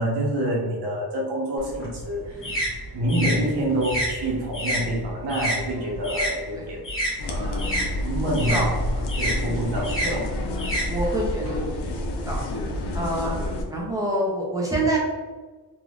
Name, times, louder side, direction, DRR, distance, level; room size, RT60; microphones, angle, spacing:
voice 1, 0.0-2.4 2.9-6.8 7.3-7.6 8.0-8.7 9.2-10.2, right 1 dB, 70° right, -3 dB, 0.9 m, -27 dB
sound 1, 1.6-6.3 6.6-11.5, equal, 30° left, 0.8 m, -29 dB
sound 2, 7.2-13.6, left 1 dB, 75° left, 0.6 m, -29 dB
voice 2, 9.4-9.8 10.0-10.2 10.7-11.9 12.3-12.4 12.9-13.4 13.7-15.0, right 1 dB, 10° right, -4 dB, 0.6 m, -27 dB
3.5 x 2.4 x 2.4 m, 1.4 s
wide cardioid pair, 155°, 41 cm